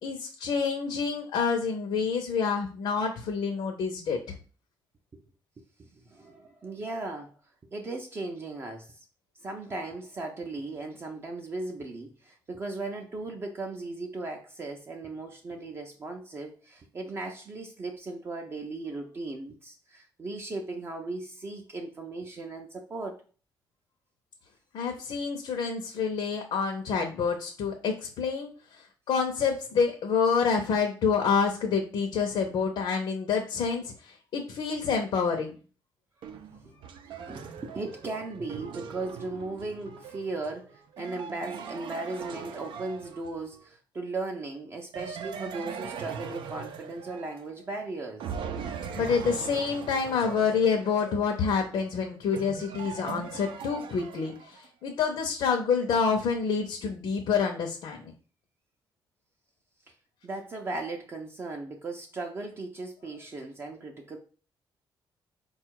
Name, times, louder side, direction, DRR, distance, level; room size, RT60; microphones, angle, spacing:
voice 1, 0.0-4.3 24.7-35.5 48.6-58.1, left 5 dB, 70° left, 0.7 m, -28 dB
voice 2, 5.8-7.3 7.7-9.1 9.4-23.2 37.1-48.3 60.2-64.2, right 3 dB, 30° right, 0.5 m, -37 dB
sound 1, 36.2-43.6 44.9-47.8 48.2-54.7, right 6 dB, 85° right, 0.5 m, -41 dB
4.3 x 2.3 x 4.5 m
cardioid pair, 165°, 8 cm